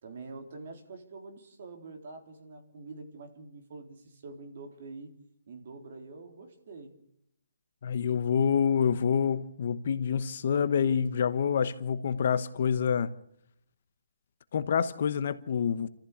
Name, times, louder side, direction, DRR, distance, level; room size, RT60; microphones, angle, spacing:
voice 1, 0.0-5.1 5.5-6.9, right 3 dB, 35° right, 3.9 m, -46 dB
voice 2, 7.8-13.1 14.5-15.9, left 7 dB, 35° left, 1.0 m, -27 dB
29.0 x 14.5 x 8.6 m
hypercardioid pair, 175°, 0 cm